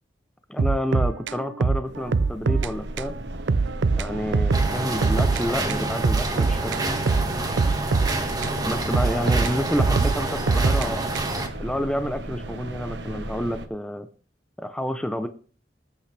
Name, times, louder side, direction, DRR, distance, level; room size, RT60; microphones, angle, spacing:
voice 1, 0.5-3.1 3.9-6.7 8.6-11.0 11.6-14.1 14.6-15.3, equal, 5° left, 8 dB, 0.7 m, -29 dB
sound 1, 0.6-2.7 3.0-3.1 3.5-5.4 5.7-8.6 8.9-11.5, right 4 dB, 90° right, 0.5 m, -23 dB
sound 2, 1.8-13.7, right 1 dB, 70° right, 1.4 m, -35 dB
sound 3, 4.5-11.5, right 2 dB, 20° right, 1.8 m, -28 dB
19.5 x 8.7 x 3.4 m, 0.40 s
head